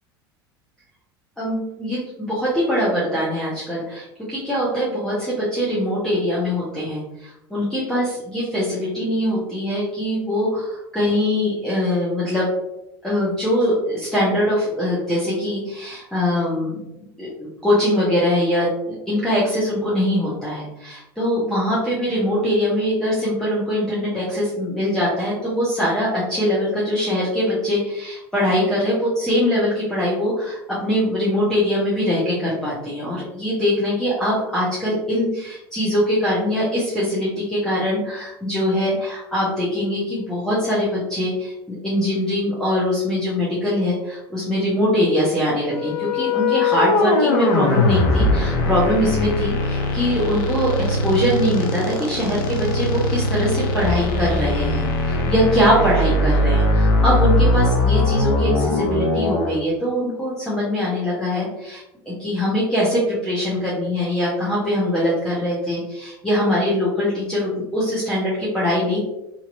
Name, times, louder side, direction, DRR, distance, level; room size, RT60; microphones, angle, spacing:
voice 1, 1.4-2.0 2.3-12.5 13.0-41.5 41.8-69.0, equal, 5° left, -8 dB, 1.1 m, -22 dB
sound 1, 45.7-59.6, left 2 dB, 65° left, 0.6 m, -20 dB
2.9 x 2.8 x 2.5 m, 0.87 s
hypercardioid pair, 80°, 12 cm